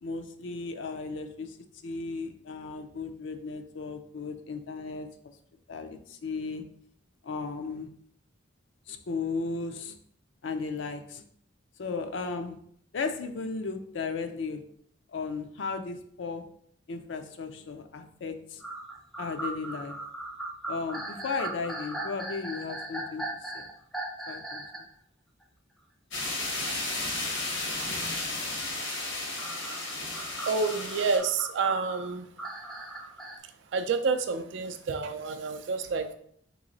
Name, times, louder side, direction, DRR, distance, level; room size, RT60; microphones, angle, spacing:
voice 1, 0.0-1.6 1.8-5.1 5.7-6.6 7.2-7.9 8.9-10.0 10.4-11.2 11.8-12.6 12.9-14.6 15.1-16.4 16.9-18.6 19.2-20.0 20.7-23.7 24.3-24.9, left 4 dB, 75° left, 6 dB, 0.4 m, -35 dB
sound 1, 18.6-24.9 25.4-25.5 26.9-27.0 29.4-33.4, right 2 dB, ahead, 0.4 m, -38 dB
sound 2, 26.1-31.2, left 2 dB, 90° left, 1.3 m, -33 dB
voice 2, 30.4-32.3 33.7-36.1, right 4 dB, 70° right, 9 dB, 0.4 m, -29 dB
3.8 x 3.0 x 3.8 m, 0.65 s
head